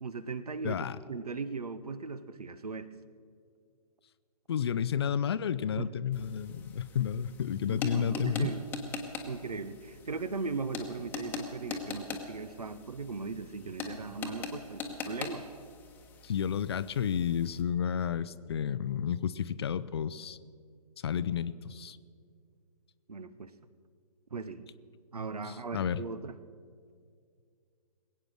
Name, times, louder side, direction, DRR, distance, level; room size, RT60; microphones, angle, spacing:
voice 1, 0.0-2.9 5.8-5.9 7.7-8.7 9.2-15.4 23.1-23.5 24.3-24.7 25.1-26.4, right 4 dB, 70° right, 15 dB, 0.9 m, -38 dB
voice 2, 0.6-1.0 4.5-8.5 16.2-20.4 21.0-22.0 25.4-26.0, left 8 dB, 40° left, 16 dB, 0.5 m, -31 dB
sound 1, 6.1-17.6, left 4 dB, 10° left, 1.1 m, -42 dB
21.0 x 8.9 x 6.3 m, 2.2 s
figure-of-eight pair, 130°, 20 cm